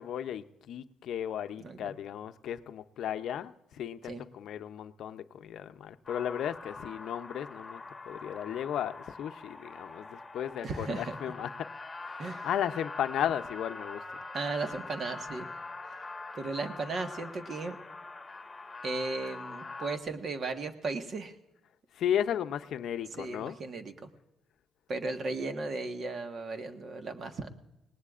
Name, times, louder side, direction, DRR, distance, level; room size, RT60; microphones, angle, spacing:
voice 1, 0.0-11.7 12.0-14.0 21.9-23.6, left 10 dB, 75° left, 0.6 m, -35 dB
voice 2, 1.6-1.9 4.1-4.2 10.6-11.2 12.2-12.5 14.3-15.5 16.3-17.8 18.8-21.3 23.2-24.1 24.9-27.5, right 3 dB, 50° right, 1.4 m, -36 dB
sound 1, 6.1-20.0, left 3 dB, 20° left, 1.4 m, -44 dB
20.0 x 18.5 x 2.5 m
cardioid pair, 90°, 0 cm